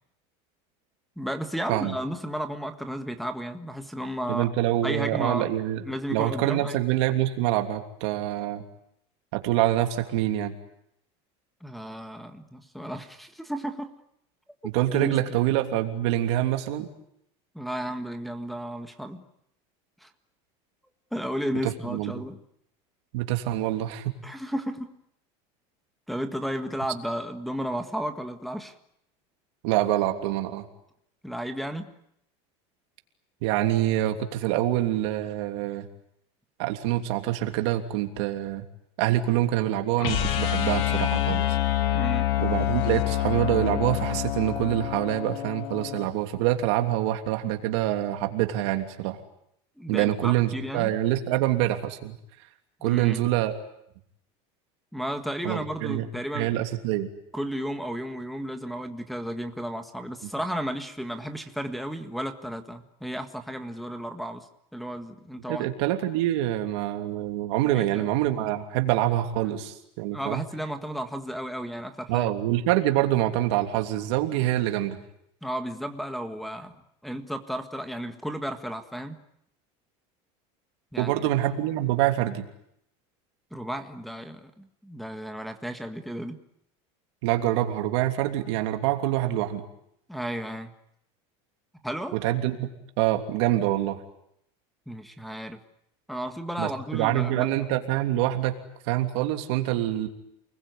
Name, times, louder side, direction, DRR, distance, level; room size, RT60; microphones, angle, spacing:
voice 1, 1.2-4.5 4.8-5.5 5.8-6.8 11.6-13.9 14.9-15.4 17.5-19.3 20.0-20.1 21.1-22.4 24.2-25.0 26.1-28.7 31.2-31.9 41.9-42.3 49.8-50.9 52.8-53.2 54.9-56.5 57.3-64.5 64.7-65.7 67.6-68.1 70.1-72.3 75.4-79.2 80.9-81.3 83.5-86.4 90.1-90.7 91.8-92.2 94.9-95.6 96.1-97.6, equal, ahead, 8 dB, 1.7 m, -33 dB
voice 2, 4.3-5.8 6.1-8.6 9.3-10.5 14.7-16.9 21.6-22.1 23.1-24.1 29.6-30.6 33.4-35.9 36.6-38.6 39.0-41.6 42.4-49.2 49.9-52.1 52.8-53.6 55.4-56.1 56.3-57.1 65.5-70.4 72.1-75.0 81.0-82.4 87.2-89.6 92.1-92.7 93.0-94.0 96.6-98.5 98.9-100.1, right 14 dB, 70° right, 6 dB, 3.1 m, -25 dB
sound 1, 40.0-46.1, left 13 dB, 70° left, 3.5 m, -27 dB
29.0 x 21.0 x 9.5 m, 0.74 s
cardioid pair, 165°, 15 cm